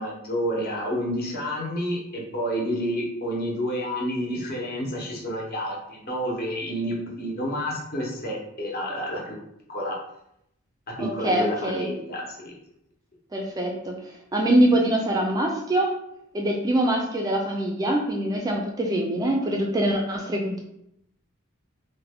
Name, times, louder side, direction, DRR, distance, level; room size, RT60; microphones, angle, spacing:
voice 1, 0.0-9.4 9.7-10.0 11.0-12.5, equal, 45° left, -2 dB, 0.8 m, -29 dB
voice 2, 11.0-11.9 13.3-13.9 14.3-15.9 16.3-20.6, right 1 dB, 15° right, 0 dB, 0.3 m, -24 dB
3.3 x 2.1 x 3.4 m, 0.78 s
head